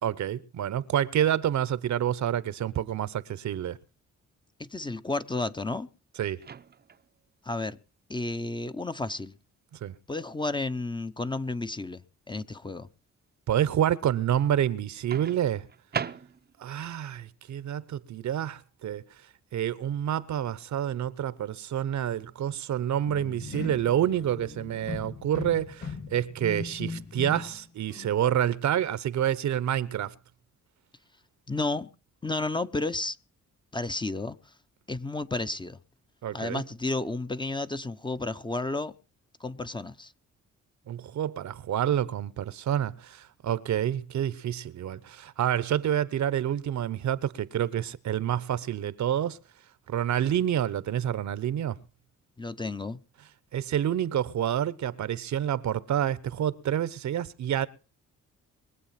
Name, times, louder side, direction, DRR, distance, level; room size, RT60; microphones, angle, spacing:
voice 1, 0.0-3.8 6.2-6.4 9.8-10.0 13.5-15.7 16.6-19.0 19.5-30.1 36.2-36.6 40.9-49.4 49.9-51.8 53.5-57.7, right 10 dB, 70° right, 1.0 m, -28 dB
voice 2, 4.6-5.9 7.4-7.8 8.1-9.3 10.1-12.9 31.5-31.9 32.2-33.2 33.7-34.4 34.9-35.8 36.3-38.9 39.4-40.1 52.4-53.0, left 2 dB, 15° left, 0.7 m, -32 dB
Microwave oven, 6.4-7.1 9.1-9.3 15.1-16.7, right 7 dB, 35° right, 0.6 m, -37 dB
sound 1, 23.1-27.6 27.9-28.2, left 4 dB, 50° left, 2.5 m, -39 dB
22.5 x 8.2 x 5.8 m
cardioid pair, 125°, 30 cm